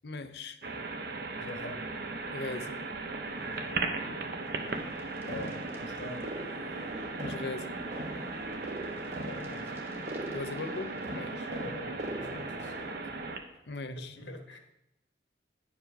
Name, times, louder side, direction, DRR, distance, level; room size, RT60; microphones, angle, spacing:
voice 1, 0.0-0.6 2.3-2.8 7.2-7.7 10.3-11.5 13.7-14.2, left 3 dB, 65° left, 9 dB, 0.6 m, -39 dB
sound 1, 0.6-13.4, right 3 dB, 60° right, 0.8 m, -37 dB
voice 2, 1.4-1.8 5.2-6.2 9.2-9.7 11.5-12.8 13.8-14.6, left 1 dB, 80° left, 4 dB, 1.3 m, -44 dB
sound 2, 3.1-13.7, equal, 15° right, 1.0 m, -52 dB
sound 3, 5.3-13.0, right 1 dB, 40° right, 1.0 m, -42 dB
10.0 x 5.0 x 5.2 m, 0.86 s
head